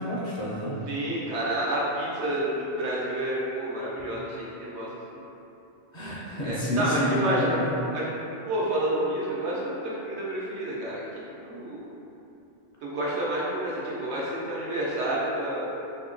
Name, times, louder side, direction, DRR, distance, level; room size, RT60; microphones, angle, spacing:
voice 1, 0.0-0.8 5.9-7.7, equal, 50° left, -7 dB, 0.7 m, -29 dB
voice 2, 0.9-5.2 6.4-7.5 7.9-8.0 8.5-11.1 11.4-11.9 12.8-15.7, right 1 dB, 85° right, -6 dB, 1.1 m, -29 dB
2.9 x 2.9 x 3.7 m, 2.9 s
omnidirectional pair, 1.1 m